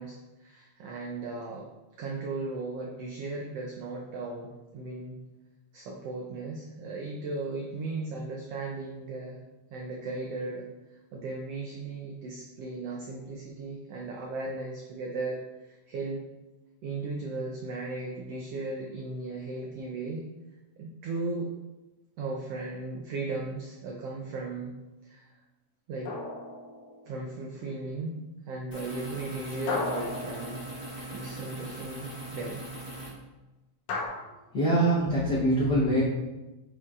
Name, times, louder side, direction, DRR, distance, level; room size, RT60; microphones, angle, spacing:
voice 1, 0.0-1.7 2.0-5.2 5.7-9.4 9.7-10.6 11.1-15.4 15.6-16.2 16.8-20.3 20.8-21.5 22.2-24.7 25.0-25.3 25.9-26.1 27.1-28.2 28.5-30.6 31.1-32.6, right 3 dB, 80° right, -1 dB, 1.4 m, -36 dB
sound 1, 26.1-27.3 29.7-31.3 33.9-34.1, left 3 dB, 80° left, 2.2 m, -35 dB
sound 2, 28.7-33.1, right 1 dB, 25° left, 1.2 m, -40 dB
voice 2, 34.5-36.0, right 1 dB, 60° left, -9 dB, 1.0 m, -23 dB
8.3 x 4.6 x 2.5 m, 1.1 s
omnidirectional pair, 3.5 m